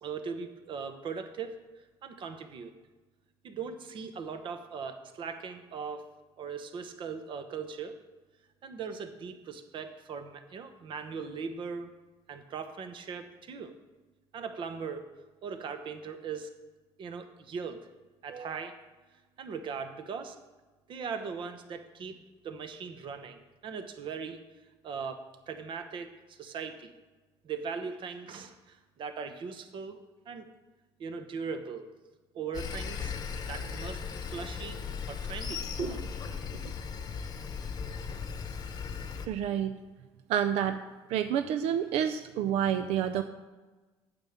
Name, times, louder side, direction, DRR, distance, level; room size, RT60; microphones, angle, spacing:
voice 1, 0.0-1.6 2.0-2.7 3.4-6.0 6.4-8.0 8.6-11.9 12.3-13.7 14.3-15.1 15.4-16.6 17.0-17.9 18.2-18.8 19.4-20.4 20.9-24.4 24.8-26.9 27.4-30.5 31.0-31.9 32.3-33.2 33.5-34.8 35.1-36.7, right 5 dB, 55° right, 8 dB, 1.0 m, -39 dB
Sawing, 32.5-39.3, left 6 dB, 40° left, 0.9 m, -37 dB
voice 2, 39.3-39.7 40.3-40.8 41.1-43.2, right 9 dB, 90° right, 9 dB, 0.5 m, -28 dB
9.0 x 5.3 x 7.3 m, 1.2 s
cardioid pair, 135°, 10 cm